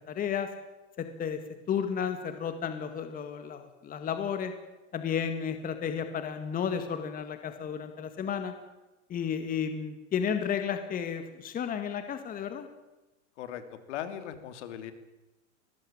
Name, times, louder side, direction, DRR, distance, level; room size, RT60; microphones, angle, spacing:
voice 1, 0.1-0.5 1.0-1.4 1.7-4.5 4.9-8.5 9.1-12.7, left 7 dB, 20° left, 8 dB, 2.0 m, -32 dB
voice 2, 13.4-14.9, left 10 dB, 60° left, 10 dB, 3.2 m, -39 dB
22.0 x 19.0 x 8.9 m, 1.0 s
supercardioid pair, 140°, 38 cm